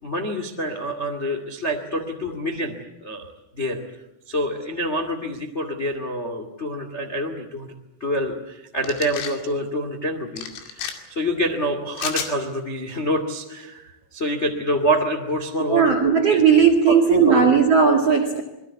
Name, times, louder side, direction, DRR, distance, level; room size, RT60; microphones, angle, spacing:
voice 1, 0.0-2.7 3.0-3.3 3.6-3.8 4.3-7.7 8.0-17.5, equal, 55° left, 5 dB, 0.7 m, -27 dB
sound 1, 8.8-9.4 10.4-10.9 12.0-12.3, left 8 dB, 85° left, 5.1 m, -30 dB
voice 2, 15.7-18.4, right 6 dB, 55° right, 6 dB, 1.7 m, -16 dB
26.5 x 22.0 x 8.4 m, 0.88 s
omnidirectional pair, 5.9 m